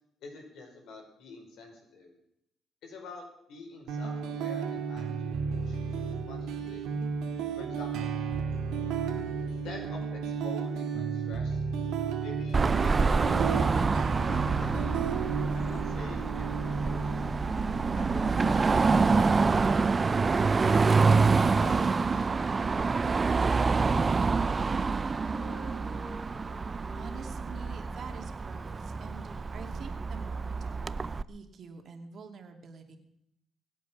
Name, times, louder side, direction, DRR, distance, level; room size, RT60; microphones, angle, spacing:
voice 1, 0.2-2.1 2.8-6.8 7.6-8.1 9.4-11.6 12.2-13.9 14.3-14.8 15.5-17.2 17.9-21.0 21.6-22.8 23.4-23.6, left 3 dB, 80° left, 2 dB, 5.4 m, -47 dB
sound 1, 3.9-21.8, right 5 dB, 90° right, 2.1 m, -34 dB
Car passing by / Traffic noise roadway noise / Engine, 12.5-31.2, right 4 dB, 30° right, 0.5 m, -27 dB
Wind instrument woodwind instrument, 23.9-28.0, left 2 dB, 55° left, 5.1 m, -53 dB
voice 2, 26.9-33.0, right 5 dB, 55° right, 5 dB, 2.4 m, -47 dB
23.5 x 8.3 x 5.9 m, 0.78 s
cardioid pair, 90°, 0 cm